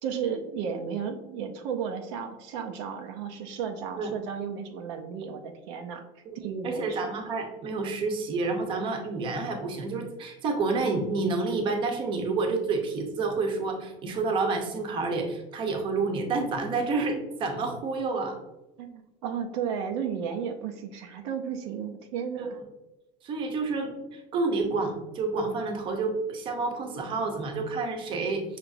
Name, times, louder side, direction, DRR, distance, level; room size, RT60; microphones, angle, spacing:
voice 1, 0.0-6.0 6.3-7.1 18.8-22.5, right 7 dB, 85° right, 4 dB, 0.5 m, -34 dB
voice 2, 6.6-18.4 22.4-22.5 23.2-28.4, right 3 dB, 35° right, 3 dB, 0.7 m, -29 dB
5.9 x 2.9 x 2.6 m, 1.0 s
cardioid pair, 155°, 14 cm